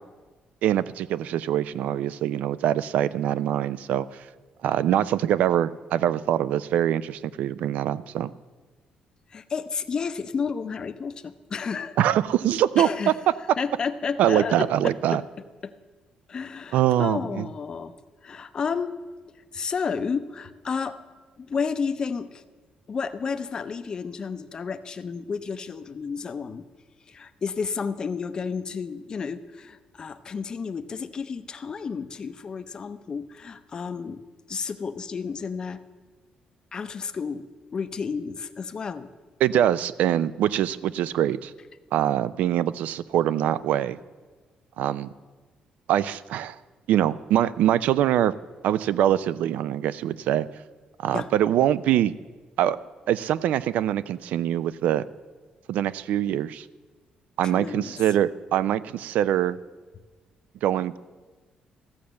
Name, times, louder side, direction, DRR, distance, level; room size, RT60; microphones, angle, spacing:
voice 1, 0.6-4.2 4.6-8.3 12.0-13.1 14.2-15.2 16.7-17.5 39.4-41.5 41.9-44.0 44.8-45.1 45.9-46.6 46.9-48.3 48.6-50.5 51.0-52.1 52.6-52.8 53.1-55.0 55.7-56.7 57.4-59.6 60.6-61.0, right 11 dB, 80° right, 17 dB, 0.4 m, -23 dB
voice 2, 9.3-12.0 12.8-13.2 13.6-15.2 15.6-15.7 16.3-17.9 18.2-18.9 19.5-21.0 21.4-22.4 22.9-26.6 27.1-34.2 34.5-35.8 36.7-37.5 37.7-39.1 51.1-51.3 57.4-58.0, left 5 dB, 30° left, 10 dB, 0.5 m, -31 dB
14.0 x 7.0 x 6.4 m, 1.3 s
cardioid pair, 155°, 3 cm